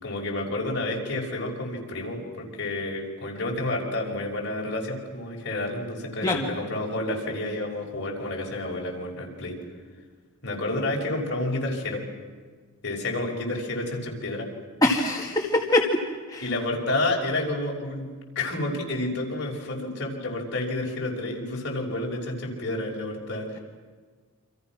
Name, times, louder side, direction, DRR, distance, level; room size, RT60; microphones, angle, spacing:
voice 1, 0.0-9.6 10.4-12.0 12.8-14.5 16.4-18.1 18.4-23.6, left 2 dB, 55° left, -1 dB, 5.8 m, -30 dB
voice 2, 14.8-16.0 16.3-16.4, left 1 dB, 15° left, -2 dB, 2.1 m, -23 dB
29.5 x 26.5 x 6.1 m, 1.5 s
head